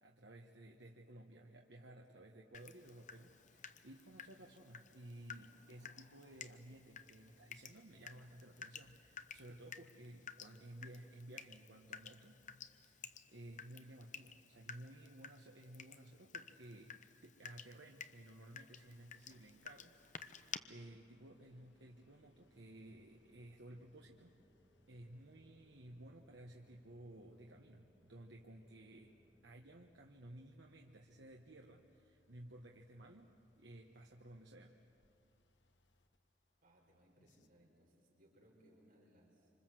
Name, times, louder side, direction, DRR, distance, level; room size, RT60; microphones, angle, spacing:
voice 1, 0.0-12.4 12.7-16.9 17.2-24.4 24.9-29.1 29.4-34.7, right 1 dB, 75° right, 1 dB, 1.4 m, -56 dB
Water tap faucet / Drip, 2.5-20.6, left 7 dB, 45° left, 0.9 m, -54 dB
sound 1, 18.7-37.5, left 1 dB, 85° left, 1.4 m, -76 dB
sound 2, 19.2-29.4, equal, 15° right, 1.7 m, -75 dB
voice 2, 36.6-39.5, equal, 50° right, -2 dB, 5.0 m, -68 dB
27.0 x 26.0 x 7.7 m, 2.6 s
head